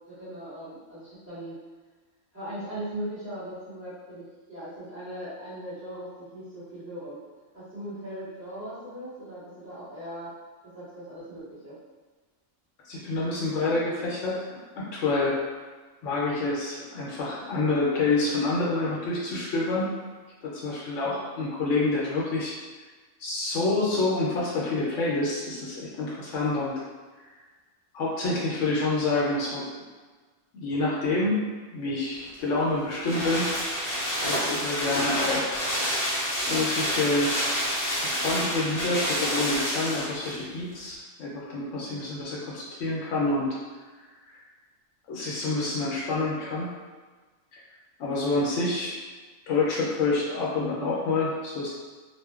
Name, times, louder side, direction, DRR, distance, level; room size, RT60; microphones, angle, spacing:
voice 1, 0.1-1.5 2.3-7.2 7.5-10.3 10.6-11.8 21.0-21.2 41.8-42.0, right 1 dB, 10° right, -13 dB, 1.0 m, -39 dB
voice 2, 12.9-15.4 16.0-19.9 20.4-22.5 23.2-26.8 27.9-29.6 30.5-31.4 31.7-33.5 34.3-35.6 36.5-37.4 38.0-43.6 45.1-46.7 48.0-48.9 49.5-51.7, left 2 dB, 75° left, -5 dB, 0.9 m, -27 dB
sound 1, 32.2-40.4 40.7-40.8, equal, 45° left, 0.5 m, -28 dB
2.6 x 2.1 x 2.3 m, 1.4 s
omnidirectional pair, 1.3 m